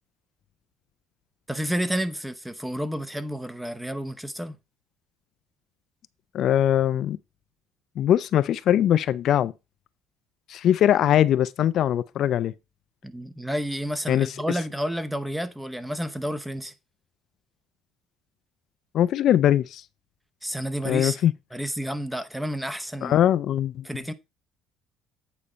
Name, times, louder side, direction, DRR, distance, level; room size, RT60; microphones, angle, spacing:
voice 1, 1.5-4.6 13.0-16.7 20.4-21.2 21.5-23.2 23.8-24.1, equal, 5° right, 0.7 m, -30 dB
voice 2, 6.3-7.2 8.0-9.5 10.5-12.5 14.1-14.3 18.9-19.8 20.8-21.3 23.0-23.9, left 11 dB, 55° left, 0.4 m, -21 dB
8.6 x 4.2 x 5.0 m
cardioid pair, 120°, 0 cm